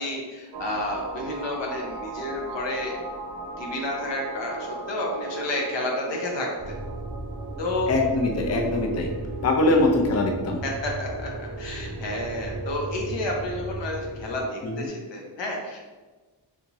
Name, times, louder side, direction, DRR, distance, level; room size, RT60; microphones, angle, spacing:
voice 1, 0.0-2.9 3.6-6.5 7.6-7.9 9.7-9.8 10.6-15.8, left 1 dB, 85° left, 0 dB, 0.8 m, -31 dB
sound 1, 0.5-14.9, right 4 dB, 70° right, 0.5 m, -38 dB
sound 2, 6.6-14.4, right 1 dB, 15° right, 0.8 m, -36 dB
voice 2, 7.9-9.1 9.4-10.6 14.6-14.9, left 2 dB, 40° left, 2 dB, 0.5 m, -22 dB
3.5 x 2.7 x 2.9 m, 1.3 s
cardioid pair, 75°, 43 cm